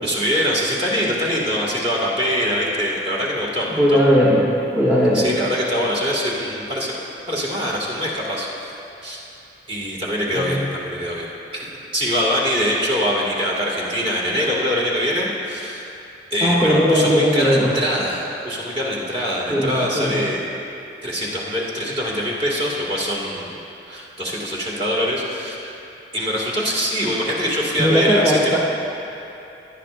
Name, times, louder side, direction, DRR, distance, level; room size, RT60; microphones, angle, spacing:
voice 1, 0.0-4.0 5.1-6.9 7.3-9.2 9.7-15.9 16.3-20.4 21.0-23.6 23.9-25.7 26.1-28.6, equal, 35° right, -5 dB, 2.1 m, -23 dB
voice 2, 3.8-4.5 4.7-5.3 10.3-10.6 16.4-17.7 19.5-20.1 27.8-28.6, equal, 15° right, -8 dB, 1.3 m, -18 dB
18.0 x 11.5 x 2.6 m, 2.9 s
head